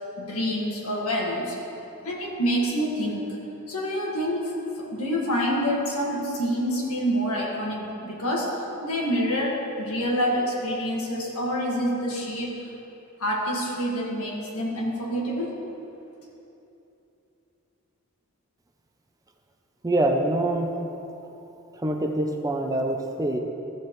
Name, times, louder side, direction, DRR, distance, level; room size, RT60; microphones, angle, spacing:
voice 1, 0.2-1.6 2.0-3.3 3.7-12.7 13.2-15.5, equal, 85° left, -3 dB, 1.8 m, -27 dB
voice 2, 19.8-20.7 21.7-23.4, right 1 dB, 15° right, 3 dB, 0.5 m, -25 dB
14.0 x 7.2 x 3.1 m, 2.8 s
head